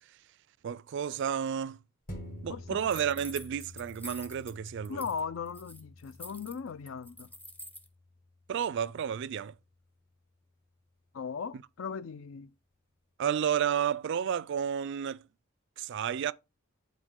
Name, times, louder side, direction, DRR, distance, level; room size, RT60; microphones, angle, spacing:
voice 1, 0.6-1.8 2.4-5.0 8.5-9.5 13.2-15.2 15.8-16.3, right 8 dB, 60° right, 0.3 m, -31 dB
sound 1, 2.1-10.9 11.3-11.4, left 1 dB, 45° left, 1.7 m, -50 dB
voice 2, 2.5-2.8 4.9-7.3 11.1-12.5, left 6 dB, 75° left, 0.4 m, -38 dB
sound 2, 2.9-4.5 4.8-5.2 5.5-7.9, equal, 10° left, 0.6 m, -47 dB
8.0 x 4.1 x 3.6 m
head